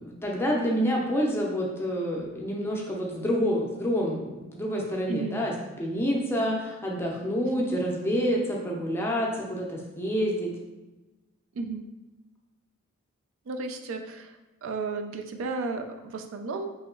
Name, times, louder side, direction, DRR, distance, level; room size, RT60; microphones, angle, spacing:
voice 1, 0.0-5.5 5.8-10.5, equal, 10° left, -2 dB, 0.5 m, -28 dB
voice 2, 5.1-5.4 11.5-11.8 13.5-14.3 14.6-16.7, right 3 dB, 80° right, 6 dB, 0.4 m, -33 dB
3.0 x 2.8 x 3.7 m, 1.1 s
head